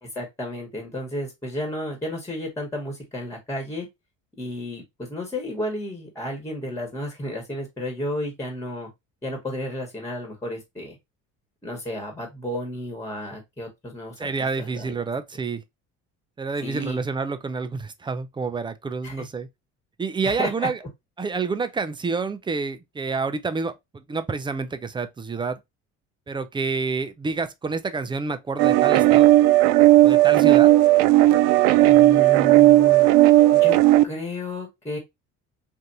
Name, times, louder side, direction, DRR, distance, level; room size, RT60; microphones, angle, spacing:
voice 1, 0.0-3.9 4.4-8.9 9.2-11.0 11.6-14.3 14.6-15.0 16.6-17.0 19.0-19.2 20.2-20.7 31.8-33.1 33.5-33.8 34.0-35.0, equal, 10° left, 1.4 m, -32 dB
voice 2, 14.2-15.6 16.4-19.5 20.0-20.8 21.2-25.6 26.3-29.3 30.0-30.7, right 4 dB, 15° right, 0.4 m, -28 dB
sound 1, 28.6-34.0, right 16 dB, 75° right, 0.5 m, -15 dB
3.3 x 2.5 x 2.7 m
supercardioid pair, 95°, 31 cm